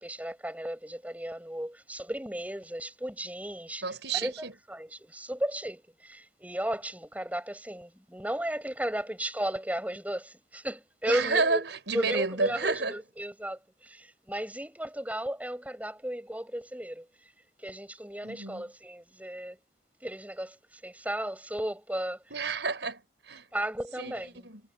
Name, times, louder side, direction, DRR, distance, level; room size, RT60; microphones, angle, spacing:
voice 1, 0.0-3.8 4.1-11.6 11.9-17.1 17.6-19.6 20.0-22.2 23.5-24.5, right 1 dB, 10° right, 6.7 m, -35 dB
voice 2, 3.8-4.5 11.1-12.9 18.2-18.6 22.3-23.5 24.0-24.1 24.4-24.6, right 4 dB, 75° right, 4.9 m, -30 dB
head